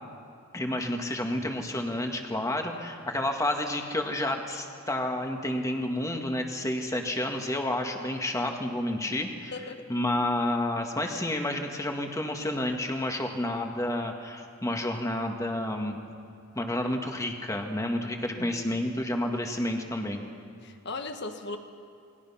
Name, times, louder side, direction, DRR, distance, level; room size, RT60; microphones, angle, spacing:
voice 1, 0.5-9.5 9.9-16.0 16.5-20.2, left 1 dB, 15° left, 3 dB, 1.8 m, -30 dB
voice 2, 9.5-9.8 18.4-18.8 20.6-21.6, left 3 dB, 50° left, 6 dB, 1.5 m, -38 dB
28.5 x 21.0 x 5.8 m, 2.5 s
head